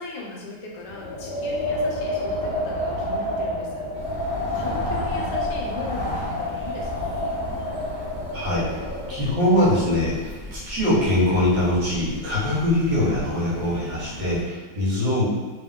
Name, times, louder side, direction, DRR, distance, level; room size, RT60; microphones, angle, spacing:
voice 1, 0.0-7.2, left 3 dB, 75° left, -2 dB, 1.3 m, -38 dB
Wind, 0.9-9.3, left 1 dB, 25° left, 0.5 m, -28 dB
sound 1, 3.9-14.4, equal, 45° right, 1.2 m, -39 dB
voice 2, 8.3-8.7 9.1-15.2, left 1 dB, 75° right, -8 dB, 2.1 m, -22 dB
3.5 x 3.2 x 3.6 m, 1.4 s
omnidirectional pair, 1.9 m